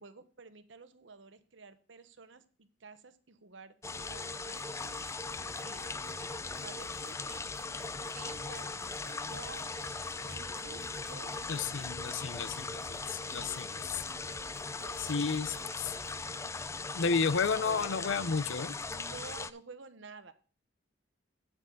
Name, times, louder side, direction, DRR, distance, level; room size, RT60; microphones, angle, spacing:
voice 1, 0.0-5.1 5.6-6.1 6.6-7.5 8.1-8.8 9.3-10.8 11.1-12.1 14.7-15.8 16.2-16.8 17.2-18.0 18.9-20.3, right 4 dB, 70° right, 1.0 m, -52 dB
sound 1, 3.8-19.5, left 4 dB, 15° left, 0.3 m, -39 dB
sound 2, 4.5-16.2, right 2 dB, 90° right, 1.5 m, -55 dB
voice 2, 11.5-14.0 15.0-16.0 16.9-18.8, left 5 dB, 70° left, 0.6 m, -32 dB
9.0 x 8.6 x 3.9 m
head